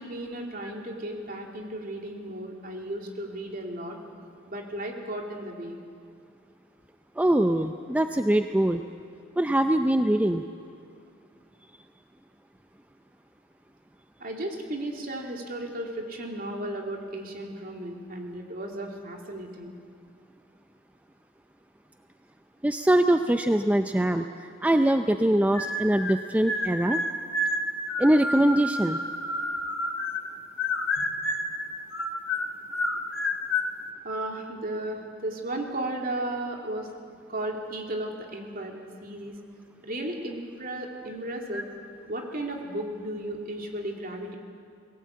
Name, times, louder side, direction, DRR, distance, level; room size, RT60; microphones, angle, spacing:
voice 1, 0.0-4.0 4.5-5.8 14.2-19.8 31.0-31.1 34.0-36.9 37.3-39.3 39.8-41.7 42.1-44.4, right 1 dB, 50° right, 1 dB, 2.8 m, -35 dB
voice 2, 7.2-8.8 9.4-10.4 22.6-27.0 28.0-29.0 41.5-41.6, right 1 dB, 10° right, 7 dB, 0.5 m, -23 dB
sound 1, 25.5-26.2 26.5-30.3 30.6-31.6 31.9-33.7, left 1 dB, 75° left, 1.5 m, -29 dB
21.5 x 17.0 x 8.5 m, 2.4 s
head